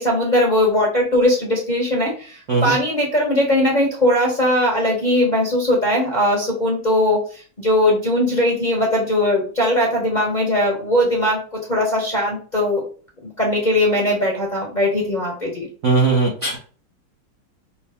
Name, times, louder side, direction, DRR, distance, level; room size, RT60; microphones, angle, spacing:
voice 1, 0.0-12.8 13.2-15.7, left 1 dB, 35° left, -3 dB, 0.8 m, -19 dB
voice 2, 15.8-16.6, right 4 dB, 60° right, -2 dB, 0.8 m, -18 dB
5.3 x 2.1 x 3.5 m, 0.40 s
omnidirectional pair, 2.3 m